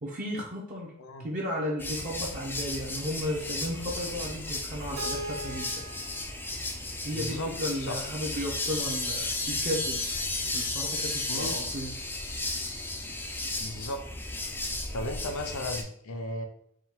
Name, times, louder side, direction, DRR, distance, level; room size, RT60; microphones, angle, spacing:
voice 1, 0.0-1.0 1.2-5.8 7.0-10.0 10.5-11.9, equal, 40° right, -3 dB, 0.6 m, -34 dB
sound 1, 1.8-15.8, left 2 dB, 10° left, 0.4 m, -34 dB
Keyboard (musical), 5.0-7.9, right 1 dB, 80° right, 0.9 m, -41 dB
voice 2, 7.1-8.0 11.3-11.5 13.6-14.0 14.9-16.5, left 1 dB, 70° left, 5 dB, 0.6 m, -35 dB
3.7 x 2.3 x 4.3 m, 0.69 s
head